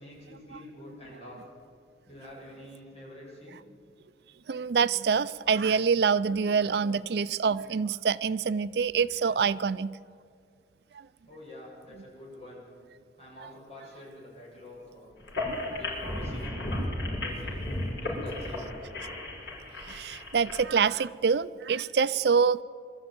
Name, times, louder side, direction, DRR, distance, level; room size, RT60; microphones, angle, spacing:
voice 1, 0.0-1.4 2.0-3.6 11.3-12.6 13.2-15.1 15.7-16.6 17.2-17.7 18.0-18.8, left 1 dB, 35° left, -4 dB, 7.4 m, -47 dB
voice 2, 4.5-10.0 19.9-22.6, right 6 dB, 65° right, 15 dB, 0.4 m, -26 dB
sound 1, 15.2-20.6, left 1 dB, 70° left, 5.6 m, -34 dB
22.5 x 13.5 x 9.4 m, 2.2 s
head